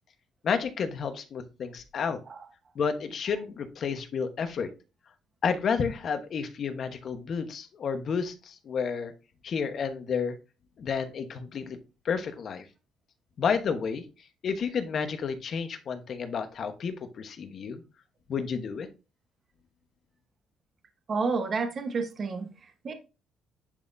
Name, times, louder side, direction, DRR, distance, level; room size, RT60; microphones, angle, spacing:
voice 1, 0.4-2.2 2.7-4.7 5.4-9.1 9.4-10.4 10.8-11.8 12.0-12.6 13.4-14.0 14.4-17.8 18.3-18.9, left 6 dB, 50° left, 8 dB, 1.1 m, -31 dB
voice 2, 21.1-22.9, right 4 dB, 40° right, 6 dB, 1.1 m, -30 dB
10.5 x 4.2 x 2.6 m, 0.30 s
cardioid pair, 125°, 0 cm